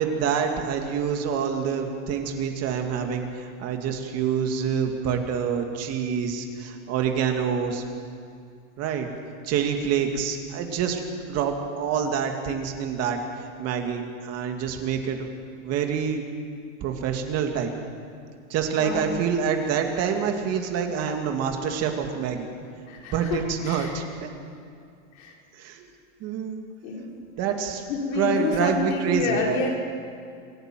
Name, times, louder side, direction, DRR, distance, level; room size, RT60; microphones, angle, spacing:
voice 1, 0.0-7.8 8.8-9.1 9.4-15.3 15.6-16.2 16.8-17.7 18.5-22.5 23.1-24.3 25.5-25.9 26.2-26.6 27.4-27.8 28.2-29.7, right 7 dB, 40° right, 4 dB, 2.5 m, -27 dB
voice 2, 18.8-19.1 22.9-23.9 25.1-25.4 26.8-27.1 27.9-29.7, left 4 dB, 75° left, -1 dB, 5.5 m, -28 dB
26.0 x 11.0 x 9.2 m, 2.3 s
supercardioid pair, 140°, 40 cm